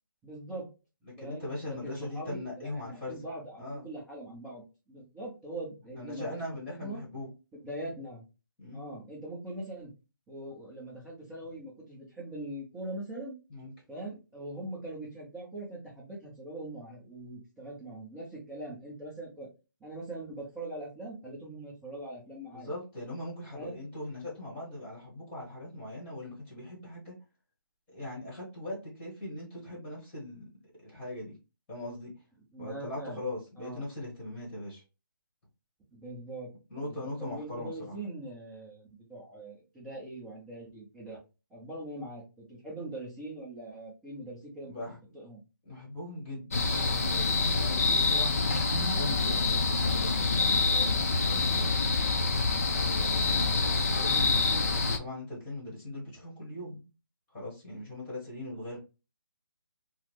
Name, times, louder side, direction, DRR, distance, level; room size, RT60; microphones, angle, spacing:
voice 1, 0.2-0.7 1.2-6.4 6.7-7.0 7.5-8.2 8.7-9.9 10.3-13.4 13.9-19.5 19.8-22.7 23.5-23.9 32.5-33.2 33.6-33.8 35.9-36.5 36.8-41.2 41.5-44.7 45.1-45.4 53.2-53.5, right 1 dB, 5° right, -12 dB, 0.6 m, -42 dB
voice 2, 1.0-3.3 3.6-3.9 5.9-7.3 8.6-8.9 13.5-13.7 22.5-27.2 27.9-30.5 30.8-31.3 31.7-32.1 32.6-34.8 36.7-38.0 44.6-45.0 45.6-56.8 57.3-58.8, left 1 dB, 10° left, -5 dB, 1.2 m, -40 dB
sound 1, 46.5-55.0, left 4 dB, 40° left, 0.5 m, -26 dB
3.6 x 2.0 x 3.0 m, 0.29 s
hypercardioid pair, 170°, 12 cm